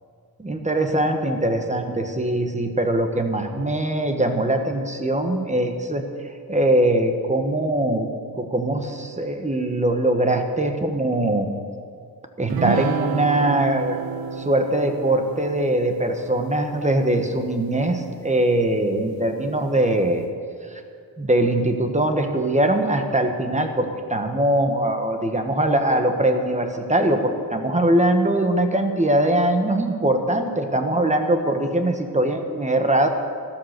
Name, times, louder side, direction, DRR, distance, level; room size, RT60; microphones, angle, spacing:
voice 1, 0.4-6.0 6.5-8.1 8.4-11.5 12.4-14.0 14.4-20.2 20.7-20.8 21.2-33.1, right 1 dB, 20° right, 5 dB, 1.3 m, -22 dB
sound 1, 12.5-18.2, right 8 dB, 70° right, 0.6 m, -31 dB
14.0 x 12.5 x 6.7 m, 2.3 s
wide cardioid pair, 130°, 37 cm